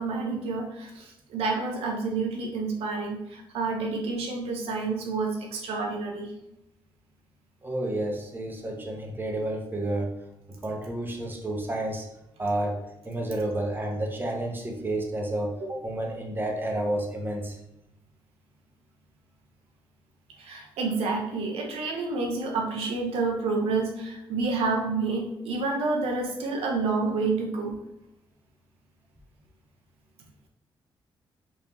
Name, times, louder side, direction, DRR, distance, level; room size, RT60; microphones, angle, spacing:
voice 1, 0.0-6.3 20.4-27.8, right 3 dB, 90° right, 1 dB, 0.6 m, -29 dB
voice 2, 7.6-10.2 10.5-12.1 12.4-17.6, right 1 dB, 20° right, 1 dB, 0.8 m, -30 dB
3.5 x 2.7 x 2.9 m, 0.90 s
cardioid pair, 70°, 10 cm